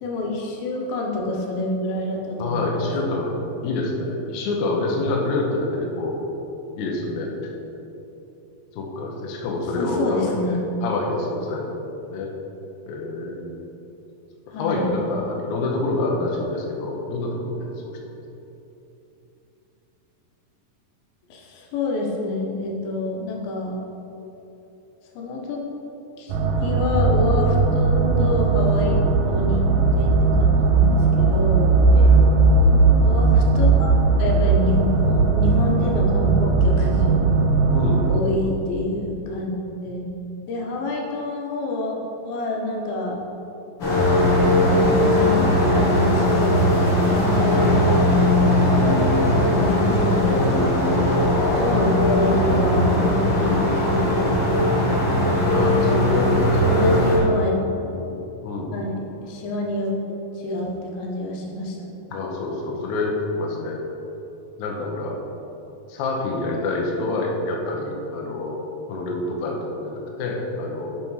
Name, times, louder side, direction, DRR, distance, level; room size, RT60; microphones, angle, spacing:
voice 1, 0.0-2.7 9.8-10.6 14.5-15.0 21.3-23.8 25.2-25.6 26.2-26.3 26.6-29.7 30.0-30.1 30.4-31.9 33.0-33.9 34.2-37.2 38.0-39.5 39.8-40.1 40.5-43.2 44.8-46.7 47.0-50.7 51.6-55.0 56.7-57.6 57.9-58.0 58.7-59.9 60.4-61.9, left 2 dB, 90° left, -1 dB, 2.8 m, -27 dB
voice 2, 2.4-3.4 3.6-6.2 6.8-7.3 8.7-11.8 12.1-12.3 12.9-13.4 14.6-18.0 28.9-29.1 31.9-32.5 37.7-38.1 51.7-51.9 55.4-57.0 58.4-58.7 62.1-63.8 64.6-65.1 65.9-68.6 68.9-71.0, left 2 dB, 70° left, -1 dB, 2.1 m, -27 dB
sound 1, 26.3-38.2, right 3 dB, 80° right, 2.2 m, -18 dB
sound 2, 43.8-57.2, left 1 dB, 40° left, 2.2 m, -19 dB
10.5 x 4.3 x 4.7 m, 3.0 s
omnidirectional pair, 4.1 m